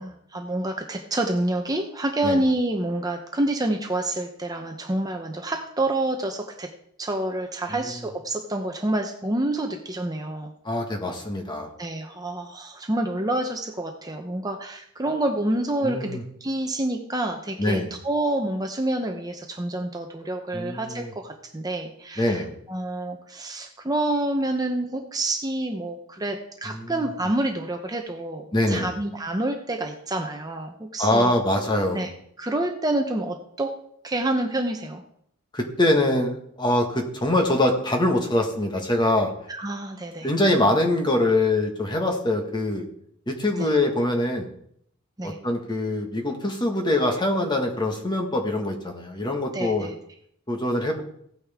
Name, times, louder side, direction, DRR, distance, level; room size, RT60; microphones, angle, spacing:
voice 1, 0.0-6.7 7.0-10.5 11.8-22.4 22.7-31.3 31.9-32.1 32.4-33.7 34.0-35.0 39.5-40.3 43.6-43.8 45.2-45.4 49.5-49.9, right 1 dB, 20° right, 4 dB, 0.8 m, -28 dB
voice 2, 10.6-11.7 15.8-16.2 17.6-17.9 20.5-21.1 22.2-22.5 26.7-26.9 28.5-28.9 31.0-32.1 35.5-39.3 40.2-42.8 43.3-44.5 45.2-49.9 50.5-51.0, left 1 dB, 20° left, 2 dB, 1.6 m, -24 dB
16.0 x 9.3 x 3.6 m, 0.71 s
head